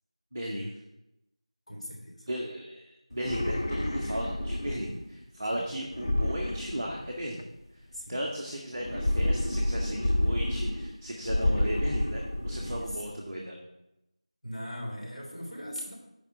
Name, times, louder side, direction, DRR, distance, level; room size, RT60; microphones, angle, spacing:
voice 1, 0.3-0.7 2.3-7.4 8.1-13.6, equal, 5° right, -11 dB, 0.3 m, -36 dB
voice 2, 1.7-2.3 4.8-5.0 5.5-5.6 7.9-8.2 12.6-12.9 14.4-15.9, equal, 65° left, -2 dB, 3.3 m, -40 dB
sound 1, 3.1-5.0 5.9-7.4 8.8-10.9 11.2-13.0, left 1 dB, 35° left, 0.6 m, -29 dB
6.8 x 5.2 x 6.7 m, 0.89 s
figure-of-eight pair, 170°, 4 cm